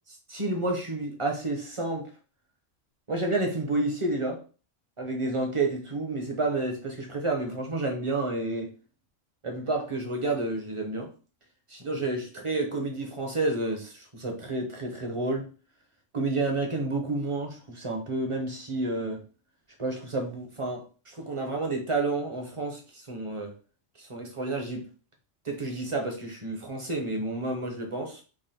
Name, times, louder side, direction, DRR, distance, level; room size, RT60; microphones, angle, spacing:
voice 1, 0.3-2.1 3.1-4.4 5.0-8.7 9.4-11.1 11.7-15.5 16.1-19.2 19.8-23.5 24.0-24.9 25.4-28.2, right 2 dB, 25° right, 1.0 m, -30 dB
3.8 x 2.9 x 4.4 m
omnidirectional pair, 1.3 m